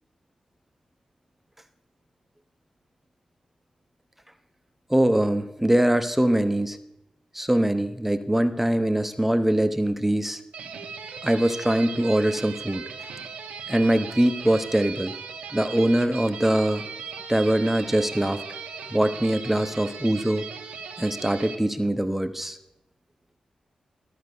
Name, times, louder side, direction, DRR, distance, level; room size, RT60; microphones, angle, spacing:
voice 1, 4.9-6.8 7.3-10.4 11.2-12.8 13.7-15.1 15.5-16.8 17.3-18.4 18.9-20.4 21.0-22.6, right 1 dB, 10° right, 9 dB, 1.0 m, -23 dB
sound 1, 10.5-21.6, right 6 dB, 85° right, 1.2 m, -38 dB
13.5 x 5.2 x 6.9 m, 0.90 s
supercardioid pair, 40°, 2 cm